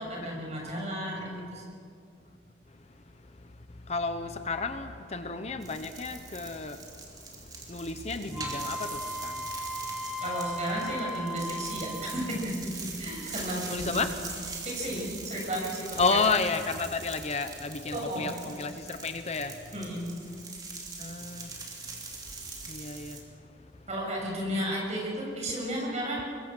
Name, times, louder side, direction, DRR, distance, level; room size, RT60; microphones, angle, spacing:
voice 1, 0.0-1.6 10.2-13.9 14.3-16.2 17.9-18.3 19.7-20.2 23.9-26.3, equal, 40° right, -2 dB, 6.9 m, -33 dB
voice 2, 1.1-1.6 2.7-2.8 3.3-10.1 13.6-14.2 16.0-19.6 21.0-21.6 22.7-23.3, left 4 dB, 35° left, 9 dB, 0.9 m, -32 dB
sound 1, 5.6-23.2, right 3 dB, 20° right, 3.1 m, -42 dB
Wind instrument woodwind instrument, 8.3-12.5, equal, 5° right, 0.9 m, -37 dB
23.0 x 23.0 x 6.2 m, 2.5 s
head